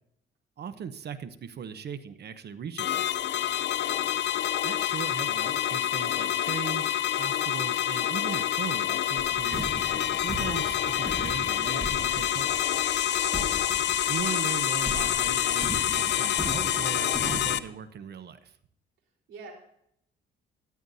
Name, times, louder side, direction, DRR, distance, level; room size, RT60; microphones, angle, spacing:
voice 1, 0.6-3.0 4.6-9.8 10.2-12.5 14.1-18.6, right 7 dB, 55° right, 12 dB, 0.9 m, -38 dB
sound 1, 2.8-17.6, left 11 dB, 60° left, 0.6 m, -27 dB
voice 2, 3.7-4.1 13.4-13.7 19.3-19.5, right 4 dB, 85° right, 0 dB, 4.0 m, -48 dB
sound 2, 9.2-14.5 14.9-17.6, equal, ahead, 1.5 m, -38 dB
sound 3, 9.6-16.3, right 2 dB, 30° right, 3.4 m, -53 dB
14.0 x 13.0 x 2.7 m, 0.73 s
cardioid pair, 90°, 20 cm